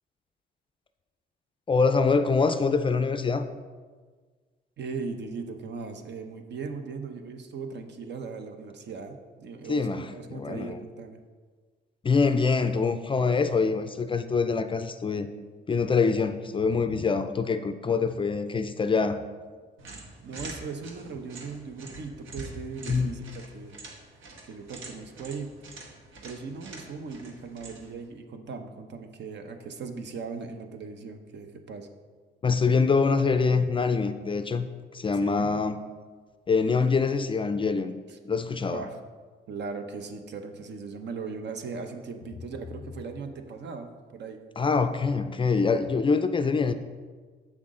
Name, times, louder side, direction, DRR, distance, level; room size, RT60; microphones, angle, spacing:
voice 1, 1.7-3.5 9.7-10.0 10.3-10.8 12.0-15.3 15.7-19.2 22.9-23.1 32.4-34.7 34.9-35.8 36.5-37.9 38.2-38.8 44.6-46.7, left 4 dB, 25° left, 9 dB, 0.4 m, -24 dB
voice 2, 4.8-11.2 20.2-23.7 24.4-25.9 26.2-31.9 35.2-35.6 38.1-38.2 38.5-39.0 39.5-44.4, right 4 dB, 60° right, 6 dB, 0.8 m, -38 dB
sound 1, 19.8-28.0, right 3 dB, 80° right, 1.2 m, -45 dB
7.5 x 5.9 x 3.7 m, 1.5 s
cardioid pair, 90°, 20 cm